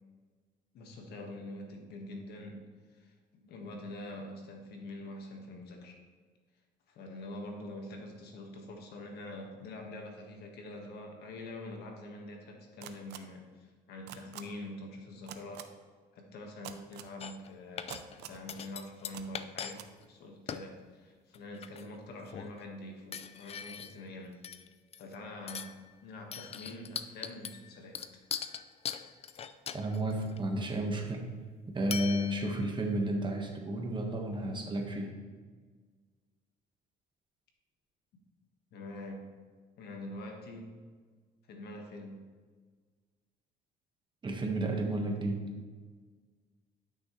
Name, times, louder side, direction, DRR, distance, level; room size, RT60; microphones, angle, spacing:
voice 1, 0.7-6.0 6.9-15.7 16.1-24.4 25.0-28.0 38.7-39.3 39.8-40.8 41.5-42.3, left 1 dB, 75° left, 2 dB, 1.5 m, -45 dB
sound 1, 12.8-13.2 14.1-14.4 15.3-15.6 16.6-17.1 17.9-18.4 19.1-19.2 19.7-19.9, right 12 dB, 80° right, 0.6 m, -44 dB
sound 2, 17.2-17.5 17.8-18.2 18.5-19.8 20.0-20.1 20.5-20.7 21.3-22.0 22.3-22.6 23.1-24.1 24.4-25.1 25.5-25.8 26.3-30.4 31.9-32.8, left 8 dB, 35° left, 0.4 m, -41 dB
voice 2, 29.7-31.3 31.7-35.1 44.2-45.4, right 1 dB, 30° right, 2 dB, 1.4 m, -32 dB
11.5 x 6.4 x 3.2 m, 1.5 s
cardioid pair, 110°, 17 cm